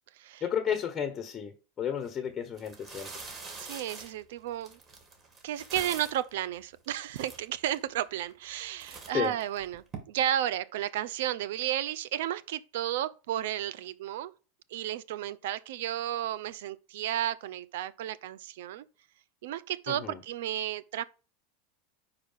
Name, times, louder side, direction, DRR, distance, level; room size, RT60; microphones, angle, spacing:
voice 1, 0.4-3.1 9.1-9.3 19.9-20.2, left 8 dB, 30° left, 1.1 m, -32 dB
sound 1, 2.0-2.1 2.5-6.3 6.8-6.9 7.1-7.8 8.3-8.5 8.8-10.0, right 4 dB, 30° right, 2.4 m, -44 dB
voice 2, 3.6-4.8 5.4-14.3 14.7-18.9 19.4-21.0, right 12 dB, 75° right, 0.5 m, -33 dB
4.8 x 4.8 x 5.6 m
hypercardioid pair, 105°, 0 cm